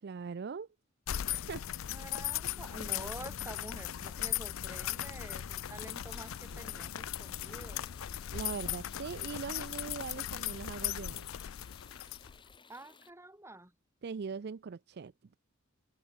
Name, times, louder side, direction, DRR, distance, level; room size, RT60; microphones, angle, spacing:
voice 1, 0.0-0.7 1.3-1.7 8.3-11.3 14.0-15.1, right 5 dB, 50° right, 0.4 m, -41 dB
sound 1, 1.1-12.6, left 11 dB, 80° left, 0.5 m, -38 dB
voice 2, 1.6-7.9 12.7-13.7, right 1 dB, 15° right, 7.3 m, -48 dB
sound 2, 5.6-13.1, left 4 dB, 25° left, 3.5 m, -59 dB
head